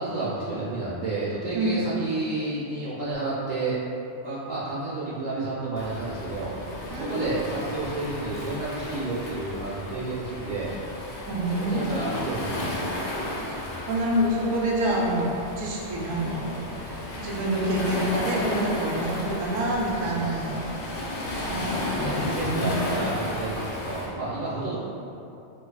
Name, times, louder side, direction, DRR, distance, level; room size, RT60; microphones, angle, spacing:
voice 1, 0.0-3.8 4.2-6.5 6.9-10.7 11.4-13.2 20.0-20.4 22.0-24.8, right 2 dB, 60° right, -8 dB, 0.5 m, -31 dB
Waves surf, 5.8-24.1, left 1 dB, 70° left, 0.9 m, -34 dB
voice 2, 6.9-7.5 11.3-12.2 13.9-20.6 21.5-22.8, right 1 dB, 90° right, -3 dB, 1.0 m, -27 dB
4.4 x 2.4 x 2.3 m, 2.7 s
omnidirectional pair, 1.2 m